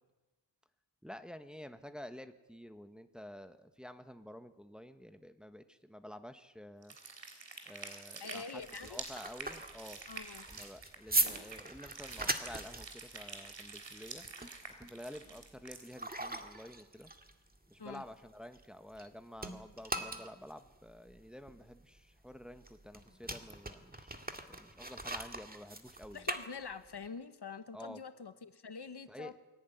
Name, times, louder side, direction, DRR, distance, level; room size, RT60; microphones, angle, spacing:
voice 1, 1.0-7.0 7.7-10.0 10.5-14.2 14.8-17.1 17.7-26.3 27.7-28.0 29.1-29.3, equal, ahead, 8 dB, 1.4 m, -50 dB
sound 1, 6.8-15.8, right 4 dB, 85° right, 3.6 m, -48 dB
voice 2, 8.2-9.0 10.1-10.5 17.8-18.0 26.1-29.4, left 5 dB, 65° left, 10 dB, 1.4 m, -45 dB
sound 2, 8.6-19.1 19.4-27.1, right 1 dB, 20° right, 2.0 m, -40 dB
23.5 x 17.5 x 9.4 m, 1.1 s
wide cardioid pair, 75°, 43 cm